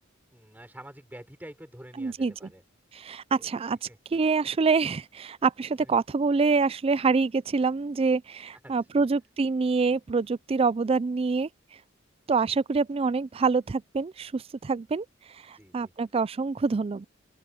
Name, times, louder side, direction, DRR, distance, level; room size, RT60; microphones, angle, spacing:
voice 1, 0.3-2.6 3.3-3.5 3.9-4.0 5.8-5.9 8.6-9.1 15.5-15.9, right 1 dB, 10° right, 5.7 m, -47 dB
voice 2, 2.0-2.5 2.9-11.5 12.3-15.1 15.5-17.0, right 4 dB, 30° right, 0.4 m, -26 dB
open air
head